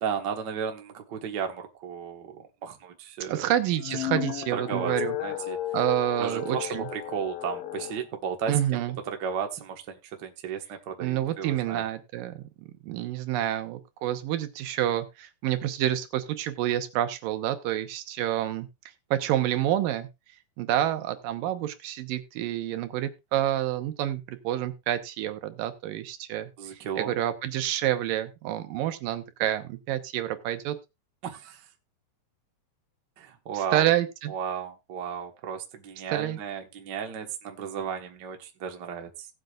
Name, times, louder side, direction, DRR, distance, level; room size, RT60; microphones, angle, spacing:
voice 1, 0.0-3.5 4.5-4.9 5.2-5.6 6.2-6.6 6.9-8.8 9.0-11.8 26.6-27.1 31.2-31.6 33.2-33.9 34.3-39.3, right 7 dB, 60° right, 4 dB, 1.1 m, -34 dB
voice 2, 3.3-5.1 5.7-6.9 8.5-9.0 11.0-12.4 12.8-18.7 19.1-20.1 20.6-30.8 33.5-34.3 36.1-36.4, right 12 dB, 80° right, 10 dB, 2.5 m, -28 dB
sound 1, 3.7-8.0, left 14 dB, 80° left, 2.4 m, -34 dB
17.5 x 7.8 x 2.4 m, 0.24 s
omnidirectional pair, 4.1 m